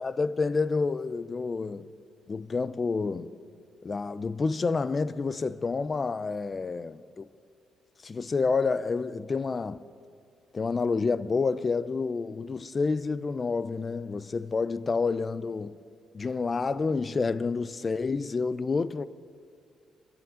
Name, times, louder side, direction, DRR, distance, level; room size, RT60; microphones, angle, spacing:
voice 1, 0.0-1.9 2.3-3.3 3.8-7.3 8.0-9.8 10.5-15.8 16.1-19.1, left 4 dB, 35° left, 0.6 m, -29 dB
24.5 x 14.5 x 3.8 m
cardioid pair, 90°, 0 cm